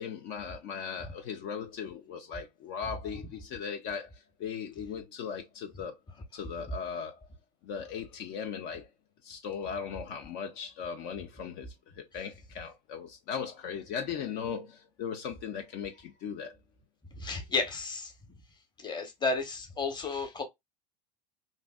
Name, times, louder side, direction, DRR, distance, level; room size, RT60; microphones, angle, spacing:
voice 1, 0.0-6.0 6.3-7.3 7.6-8.9 9.2-16.6, left 7 dB, 55° left, 0.6 m, -38 dB
voice 2, 17.1-18.1 18.8-20.4, left 4 dB, 20° left, 1.1 m, -32 dB
3.1 x 2.6 x 2.3 m
hypercardioid pair, 90°, 21 cm